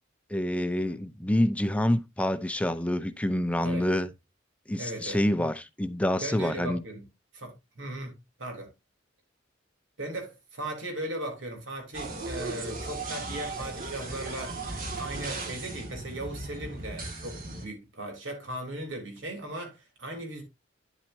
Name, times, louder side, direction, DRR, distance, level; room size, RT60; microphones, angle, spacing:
voice 1, 0.3-4.1 4.7-6.8, left 1 dB, 5° left, 0.5 m, -27 dB
voice 2, 4.8-5.2 6.2-7.0 7.3-8.7 10.0-14.6 15.0-20.4, right 1 dB, 75° right, 3.6 m, -37 dB
sound 1, 11.9-17.7, right 2 dB, 45° right, 2.1 m, -37 dB
9.9 x 7.6 x 2.7 m
head